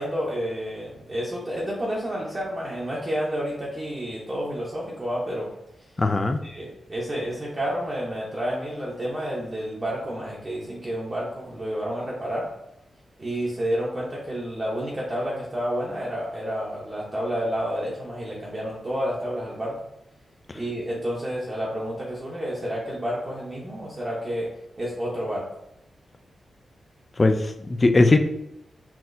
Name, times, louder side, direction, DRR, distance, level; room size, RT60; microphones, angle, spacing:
voice 1, 0.0-5.5 6.4-12.5 13.2-19.8 20.5-24.5 24.8-25.4, equal, 25° right, -5 dB, 0.8 m, -30 dB
voice 2, 6.0-6.4 27.2-28.2, left 2 dB, 25° left, 7 dB, 0.3 m, -19 dB
5.8 x 2.7 x 2.6 m, 0.80 s
wide cardioid pair, 165°, 0 cm